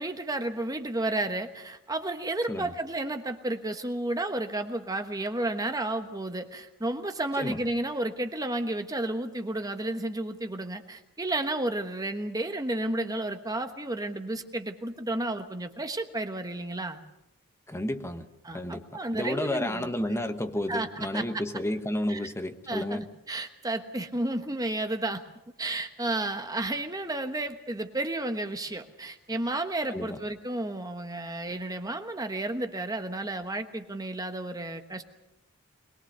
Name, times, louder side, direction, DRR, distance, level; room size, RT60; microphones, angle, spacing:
voice 1, 0.0-17.0 18.4-19.9 20.7-21.2 22.1-22.2 22.7-25.2 25.6-35.0, right 2 dB, 15° right, 7 dB, 1.2 m, -32 dB
voice 2, 17.7-18.2 18.5-18.8 19.1-23.1 29.9-30.2, left 1 dB, 10° left, 7 dB, 1.2 m, -31 dB
22.0 x 21.5 x 6.8 m, 0.89 s
head